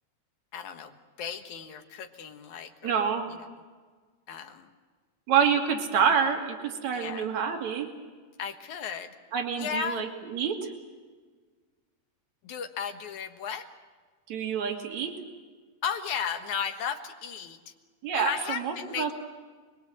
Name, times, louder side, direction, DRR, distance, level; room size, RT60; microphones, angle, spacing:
voice 1, 0.5-3.4 4.3-4.7 6.9-7.3 8.4-9.2 9.6-10.1 12.4-13.7 15.8-17.7 18.1-19.1, left 7 dB, 65° left, 7 dB, 2.7 m, -35 dB
voice 2, 2.8-3.3 5.3-7.9 9.3-10.7 14.3-15.1 18.0-19.1, right 7 dB, 60° right, 3 dB, 3.7 m, -27 dB
27.5 x 22.0 x 7.8 m, 1.5 s
omnidirectional pair, 3.7 m